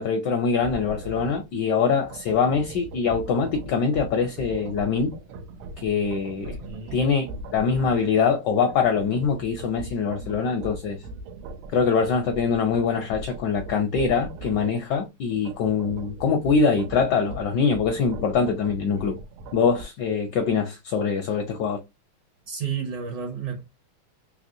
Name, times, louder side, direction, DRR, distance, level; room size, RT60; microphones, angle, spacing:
voice 1, 0.0-5.1 5.8-6.6 6.9-7.3 7.5-11.0 11.7-19.2 19.5-21.8, left 5 dB, 75° left, 1.0 m, -23 dB
sound 1, 0.6-1.6 1.9-8.2 8.5-14.9 15.3-19.8, right 2 dB, 85° right, 1.5 m, -40 dB
voice 2, 6.6-7.0 22.4-23.6, right 7 dB, 65° right, 1.3 m, -31 dB
3.5 x 2.9 x 2.6 m
omnidirectional pair, 2.3 m